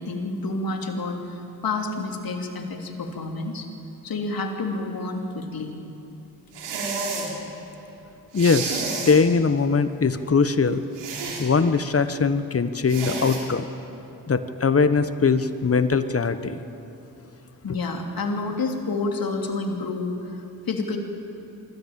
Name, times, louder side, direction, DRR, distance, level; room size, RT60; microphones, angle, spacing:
voice 1, 0.0-3.7 4.0-5.8 17.6-21.0, left 3 dB, 55° left, 3 dB, 3.0 m, -29 dB
sound 1, 6.5-7.3 8.3-9.2 10.9-11.5 12.9-13.4, right 4 dB, 85° right, 3.4 m, -30 dB
voice 2, 8.3-10.8 11.4-13.7 14.3-16.6, left 5 dB, 35° left, 11 dB, 1.2 m, -21 dB
24.5 x 14.0 x 8.8 m, 2.9 s
supercardioid pair, 50°, 41 cm